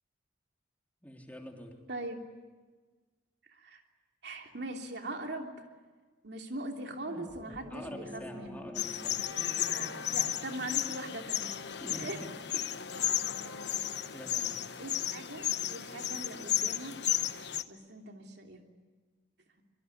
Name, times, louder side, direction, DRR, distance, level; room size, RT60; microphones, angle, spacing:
voice 1, 1.0-1.8 7.7-9.2 11.8-12.3 12.9-13.1 14.1-14.7, equal, 10° left, 2 dB, 3.3 m, -46 dB
voice 2, 1.9-2.2 3.5-3.8 4.2-5.7 6.2-8.6 9.7-11.5 12.0-12.2 14.8-17.0 17.7-18.6, right 1 dB, 60° right, 3 dB, 3.1 m, -41 dB
sound 1, 6.9-11.5, equal, 20° right, 1.9 m, -49 dB
sound 2, 8.2-8.5 9.0-15.8, left 4 dB, 85° left, 2.0 m, -50 dB
sound 3, 8.7-17.6, left 11 dB, 60° left, 1.1 m, -34 dB
26.0 x 23.0 x 10.0 m, 1.4 s
head